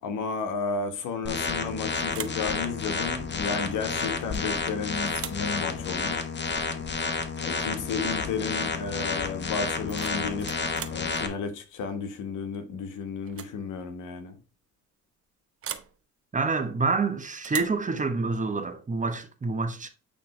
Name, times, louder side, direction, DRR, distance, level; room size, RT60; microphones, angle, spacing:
voice 1, 0.0-6.3 7.4-14.4, left 5 dB, 85° left, 1.3 m, -33 dB
sound 1, 1.3-11.3, left 4 dB, 35° left, 1.1 m, -30 dB
sound 2, 1.4-1.7 2.1-2.5 4.3-4.7 5.1-5.5 7.3-7.5 7.9-8.2 9.7-11.1 12.5-12.8 13.2-13.6 13.8-13.9 15.6-16.0 17.4-17.8, right 9 dB, 50° right, 0.8 m, -39 dB
voice 2, 16.3-19.9, right 3 dB, 25° right, 1.1 m, -27 dB
8.7 x 3.3 x 3.2 m
cardioid pair, 90°, 30 cm